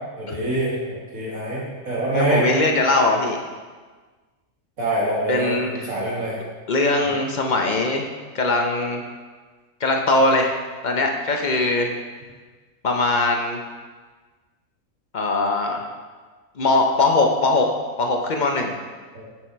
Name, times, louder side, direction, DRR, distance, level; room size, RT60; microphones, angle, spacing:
voice 1, 0.2-2.5 4.8-5.5 5.9-6.4 19.1-19.3, right 1 dB, 80° right, -6 dB, 2.7 m, -24 dB
voice 2, 2.1-3.4 5.3-5.9 6.7-9.0 9.8-10.5 10.8-11.9 12.8-13.6 15.1-15.9 16.6-17.7 18.0-18.7, left 2 dB, 40° left, 2 dB, 0.7 m, -21 dB
7.2 x 6.4 x 4.5 m, 1.4 s
omnidirectional pair, 1.4 m